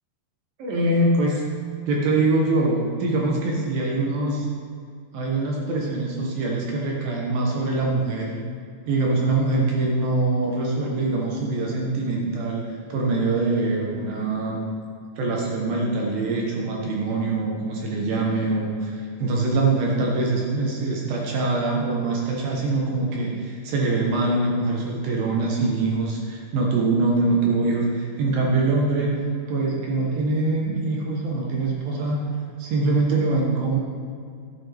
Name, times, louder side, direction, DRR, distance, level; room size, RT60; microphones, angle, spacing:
voice 1, 0.6-1.4 1.9-4.5 5.1-8.3 8.9-14.6 15.2-29.2 29.5-32.2 32.6-33.8, right 2 dB, 70° right, -2 dB, 2.3 m, -23 dB
11.5 x 8.2 x 3.4 m, 2.2 s
omnidirectional pair, 5.1 m